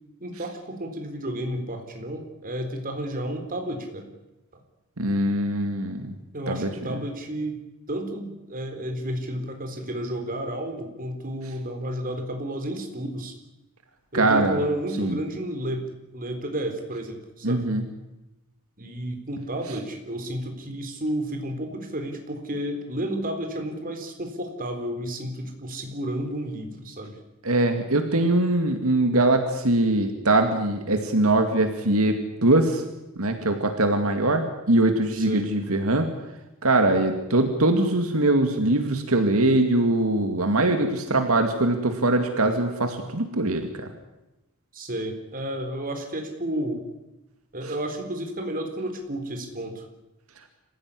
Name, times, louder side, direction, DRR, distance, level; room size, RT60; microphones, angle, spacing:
voice 1, 0.2-4.1 6.3-7.6 7.9-13.3 14.1-15.8 16.1-17.7 18.8-27.2 35.1-35.5 44.7-46.8 47.5-49.9, right 1 dB, 40° right, 5 dB, 4.0 m, -31 dB
voice 2, 5.0-6.1 6.5-7.0 14.1-14.6 15.0-15.2 17.4-17.8 27.4-32.8 33.2-36.1 36.6-43.9, right 2 dB, 75° right, 5 dB, 2.4 m, -22 dB
26.5 x 16.0 x 9.9 m, 1.0 s
head